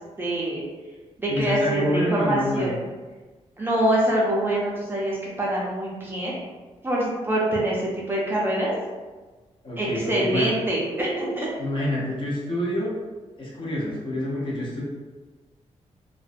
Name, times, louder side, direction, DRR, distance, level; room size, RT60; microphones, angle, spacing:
voice 1, 0.2-0.6 1.2-2.7 3.6-6.3 6.8-8.7 9.8-11.5, right 1 dB, 20° right, -6 dB, 0.4 m, -25 dB
voice 2, 1.3-2.7 9.6-10.6 11.6-13.0 13.4-14.8, left 1 dB, 40° left, -5 dB, 0.7 m, -27 dB
2.4 x 2.1 x 2.5 m, 1.3 s
wide cardioid pair, 150°, 12 cm